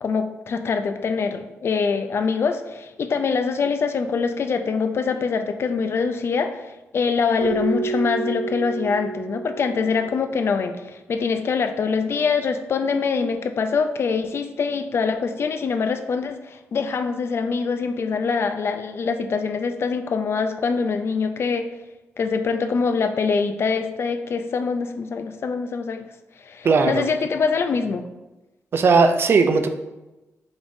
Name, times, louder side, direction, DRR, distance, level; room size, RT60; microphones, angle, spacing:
voice 1, 0.0-6.7 6.9-21.7 22.2-26.1 26.4-28.1, left 5 dB, 50° left, 7 dB, 0.3 m, -24 dB
Keyboard (musical), 7.4-10.2, right 5 dB, 75° right, 0.9 m, -30 dB
voice 2, 26.6-27.0 28.7-29.7, right 4 dB, 45° right, 7 dB, 0.4 m, -17 dB
5.0 x 3.4 x 2.6 m, 1.0 s
wide cardioid pair, 125°, 5 cm